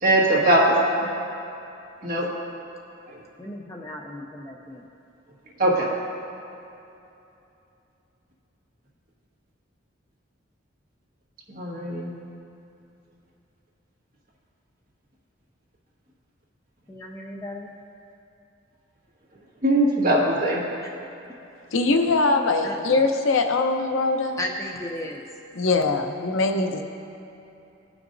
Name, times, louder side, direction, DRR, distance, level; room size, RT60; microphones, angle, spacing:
voice 1, 0.0-0.8 2.0-2.3 5.6-5.9 11.5-12.1 19.6-20.6, right 1 dB, 45° right, -4 dB, 1.6 m, -20 dB
voice 2, 3.4-4.8 16.9-17.7 20.8-20.9 22.6-22.9 24.4-25.2, left 1 dB, 15° left, 0 dB, 0.4 m, -35 dB
voice 3, 21.7-24.4 25.5-26.8, left 3 dB, 85° left, 5 dB, 0.7 m, -22 dB
17.5 x 6.0 x 2.6 m, 2.8 s
head